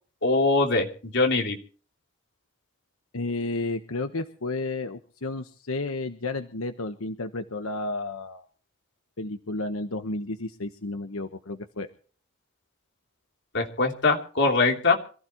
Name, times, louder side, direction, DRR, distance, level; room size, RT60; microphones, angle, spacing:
voice 1, 0.2-1.6 13.5-15.0, left 3 dB, 55° left, 1 dB, 3.3 m, -22 dB
voice 2, 3.1-8.4 9.2-11.9, left 2 dB, 85° left, 7 dB, 1.2 m, -32 dB
26.5 x 15.0 x 3.1 m, 0.41 s
head